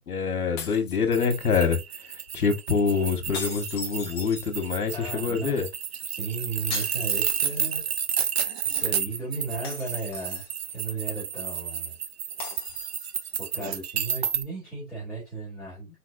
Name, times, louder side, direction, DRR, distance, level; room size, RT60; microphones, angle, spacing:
voice 1, 0.1-1.8 2.3-5.7, left 5 dB, 75° left, 1.6 m, -25 dB
sound 1, 0.6-1.6 3.3-4.9 6.7-7.9 8.2-8.3 9.6-10.7 12.4-13.3, left 5 dB, 15° left, 0.8 m, -40 dB
sound 2, 1.1-14.4, right 8 dB, 45° right, 0.6 m, -31 dB
voice 2, 4.9-5.6 6.0-7.8 8.2-8.3 8.6-12.0 13.4-15.9, right 3 dB, ahead, 2.3 m, -35 dB
4.4 x 4.1 x 2.6 m
hypercardioid pair, 155°, 44 cm